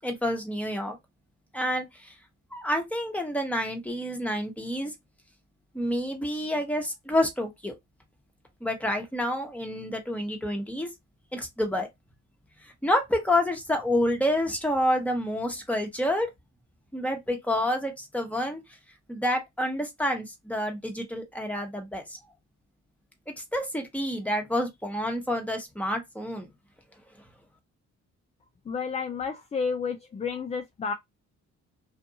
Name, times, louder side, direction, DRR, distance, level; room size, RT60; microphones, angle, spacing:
voice 1, 0.0-0.9 1.5-2.1 2.5-4.9 5.7-7.7 8.6-10.9 11.3-11.9 12.6-16.3 16.9-18.6 19.1-22.2 23.5-26.5, left 1 dB, 5° left, 1.0 m, -28 dB
voice 2, 28.7-30.9, left 5 dB, 20° left, 0.4 m, -31 dB
2.6 x 2.4 x 2.7 m
cardioid pair, 90°, 30 cm